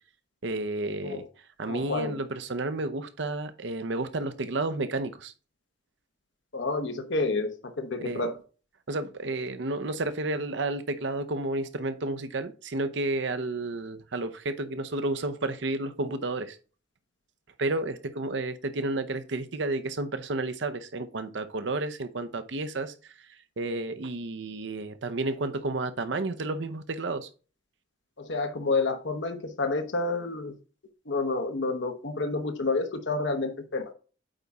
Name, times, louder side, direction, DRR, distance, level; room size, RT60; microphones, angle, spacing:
voice 1, 0.4-1.3 1.6-5.3 8.0-8.3 8.9-16.6 17.6-27.3, right 2 dB, 70° right, 0.7 m, -31 dB
voice 2, 1.7-2.1 6.5-8.3 28.3-30.5 31.1-33.9, left 3 dB, 70° left, 1.0 m, -29 dB
8.9 x 4.1 x 3.5 m
head